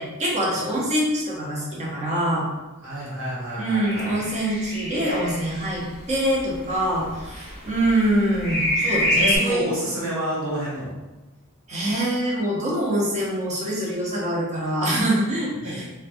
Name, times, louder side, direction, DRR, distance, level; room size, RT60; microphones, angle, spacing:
voice 1, 0.0-2.5 3.6-9.7 11.7-15.8, right 1 dB, 30° right, -4 dB, 0.7 m, -24 dB
voice 2, 2.8-4.1 9.1-10.9 15.6-15.9, right 1 dB, 75° right, -7 dB, 1.2 m, -29 dB
sound 1, 3.8-9.4, left 1 dB, 45° left, 0.5 m, -27 dB
3.0 x 2.2 x 2.5 m, 1.1 s
head